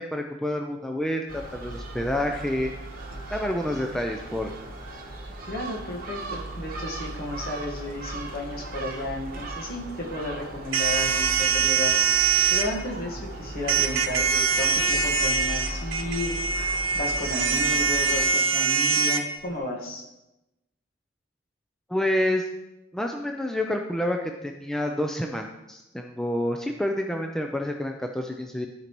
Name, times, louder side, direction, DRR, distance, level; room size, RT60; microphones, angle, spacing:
voice 1, 0.0-2.7 3.3-4.5 21.9-22.5 22.9-28.7, left 1 dB, 5° left, 3 dB, 0.4 m, -28 dB
Gull seagull, 1.3-18.3, right 1 dB, 45° right, 1.0 m, -37 dB
voice 2, 5.4-11.9 12.5-16.4 16.9-20.0, left 1 dB, 50° left, -1 dB, 1.4 m, -33 dB
sound 1, 10.7-12.7 13.7-19.2, right 6 dB, 75° right, 0.8 m, -23 dB
12.5 x 5.2 x 3.0 m, 0.96 s
head